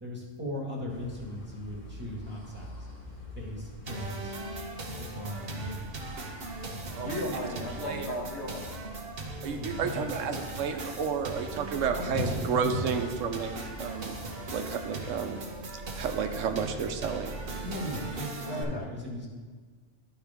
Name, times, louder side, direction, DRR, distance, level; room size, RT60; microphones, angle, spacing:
voice 1, 0.0-2.7 3.4-4.4 5.0-6.0 6.7-7.3 9.4-10.2 12.0-12.9 17.6-19.3, left 1 dB, 10° right, -4 dB, 1.8 m, -37 dB
sound 1, 0.9-18.1, equal, 40° left, 1.1 m, -46 dB
sound 2, 3.9-18.6, right 2 dB, 50° right, 1.2 m, -39 dB
voice 2, 7.0-8.7 18.5-18.9, left 1 dB, 60° left, -1 dB, 1.5 m, -36 dB
voice 3, 9.4-13.5 13.8-14.1 14.5-15.4 15.7-17.3, right 6 dB, 90° right, 6 dB, 1.0 m, -31 dB
13.0 x 4.4 x 3.5 m, 1.5 s
omnidirectional pair, 1.3 m